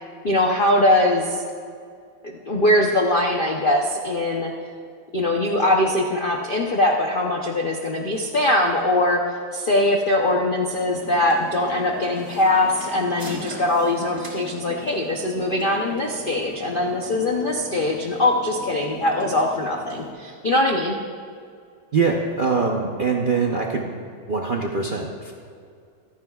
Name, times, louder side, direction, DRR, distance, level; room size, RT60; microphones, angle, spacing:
voice 1, 0.0-1.4 2.2-4.5 5.1-21.0, left 1 dB, 65° left, 1 dB, 0.5 m, -22 dB
sound 1, 10.9-20.1, equal, 30° right, 3.6 m, -39 dB
voice 2, 21.9-23.9 24.3-25.3, right 4 dB, 80° right, 0 dB, 0.4 m, -23 dB
25.0 x 9.3 x 2.3 m, 2.3 s
omnidirectional pair, 2.0 m